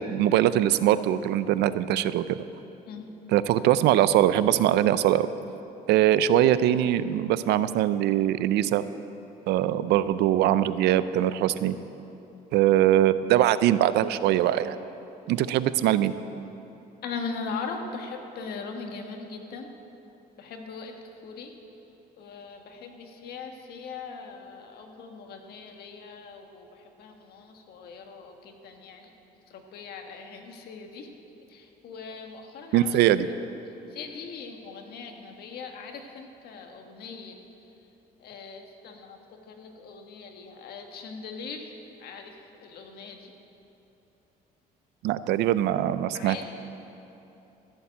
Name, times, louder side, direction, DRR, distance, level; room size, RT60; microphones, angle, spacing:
voice 1, 0.0-2.4 3.3-5.3 5.9-8.8 9.5-11.8 12.5-14.8 15.3-16.1 32.7-33.3 45.0-46.5, right 12 dB, 80° right, 14 dB, 0.5 m, -22 dB
voice 2, 17.0-19.7 20.4-21.5 22.2-29.1 29.5-31.1 31.5-33.3 33.9-37.4 38.2-43.3 46.1-46.5, left 4 dB, 70° left, 4 dB, 1.6 m, -40 dB
15.0 x 7.1 x 8.5 m, 3.0 s
cardioid pair, 110°, 17 cm